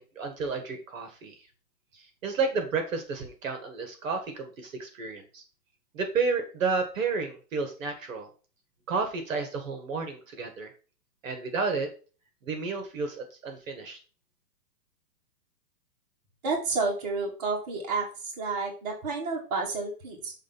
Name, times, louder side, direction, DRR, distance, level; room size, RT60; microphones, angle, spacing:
voice 1, 0.0-1.4 1.9-5.4 5.9-8.3 8.9-10.7 11.2-11.9 12.4-14.0, right 4 dB, 50° right, 5 dB, 1.6 m, -31 dB
voice 2, 16.4-18.1 18.4-20.3, right 4 dB, 25° right, -1 dB, 1.5 m, -30 dB
6.5 x 3.3 x 5.7 m, 0.36 s
hypercardioid pair, 165°, 49 cm